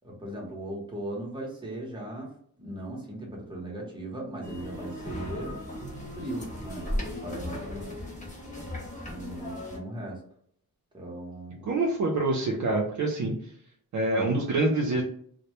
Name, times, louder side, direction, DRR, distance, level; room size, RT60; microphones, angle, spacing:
voice 1, 0.0-2.3 2.6-5.7 6.1-7.9 9.1-10.2 10.9-11.7, right 1 dB, 15° right, -3 dB, 0.7 m, -38 dB
sound 1, 4.4-9.8, left 1 dB, 20° left, 0.6 m, -36 dB
voice 2, 11.6-13.3 13.9-15.0, right 2 dB, 55° right, -2 dB, 0.5 m, -26 dB
2.1 x 2.1 x 2.8 m, 0.64 s
wide cardioid pair, 175°, 35 cm